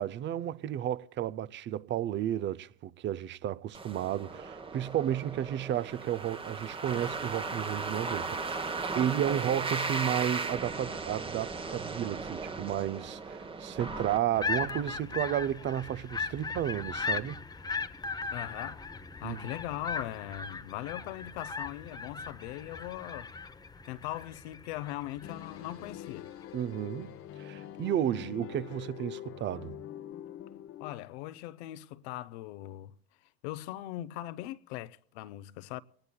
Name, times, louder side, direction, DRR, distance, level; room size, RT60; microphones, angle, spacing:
voice 1, 0.0-17.4 19.2-19.4 26.5-29.8, right 11 dB, 35° right, 0.5 m, -32 dB
sound 1, 3.7-14.9, right 4 dB, 15° right, 1.0 m, -37 dB
sound 2, 14.3-25.9, left 4 dB, 10° left, 0.7 m, -38 dB
voice 2, 18.3-18.9 19.2-23.3 23.8-26.3 30.8-32.9 33.4-35.8, left 15 dB, 75° left, 0.7 m, -40 dB
sound 3, 25.2-30.9, left 11 dB, 45° left, 0.9 m, -44 dB
24.5 x 19.5 x 2.2 m
supercardioid pair, 100°, 33 cm